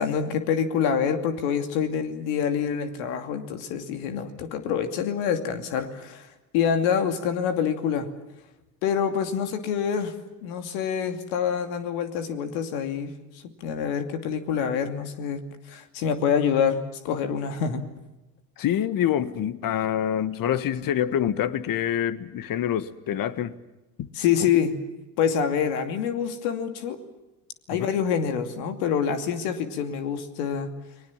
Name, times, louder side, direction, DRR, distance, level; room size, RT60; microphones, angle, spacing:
voice 1, 0.0-6.3 6.5-8.1 8.8-10.1 10.4-13.1 13.6-15.4 15.7-16.8 17.0-17.8 24.1-24.7 25.2-27.0 27.7-30.7, left 7 dB, 70° left, 2.7 m, -26 dB
voice 2, 18.6-23.6 24.0-24.1 27.7-27.9, left 10 dB, 45° left, 1.6 m, -26 dB
30.0 x 21.0 x 7.4 m
hypercardioid pair, 75°, 45 cm